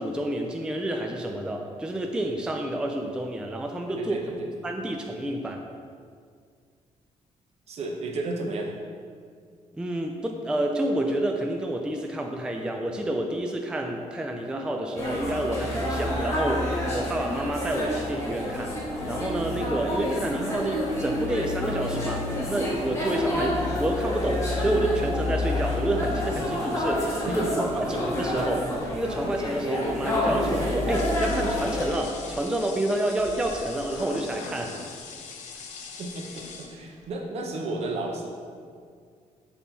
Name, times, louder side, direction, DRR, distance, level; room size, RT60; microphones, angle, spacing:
voice 1, 0.0-4.2 4.6-5.6 9.7-18.7 19.1-23.5 23.8-28.7 28.9-35.0, right 1 dB, 5° right, 2 dB, 0.3 m, -29 dB
voice 2, 4.0-4.5 7.7-8.7 23.3-23.5 27.2-27.5 27.9-28.0 36.0-38.3, right 2 dB, 55° right, 1 dB, 0.9 m, -33 dB
sound 1, 15.0-31.9, left 1 dB, 25° left, 1.6 m, -28 dB
sound 2, 30.9-37.0, left 4 dB, 70° left, 0.8 m, -41 dB
7.3 x 4.3 x 4.1 m, 2.1 s
cardioid pair, 165°, 13 cm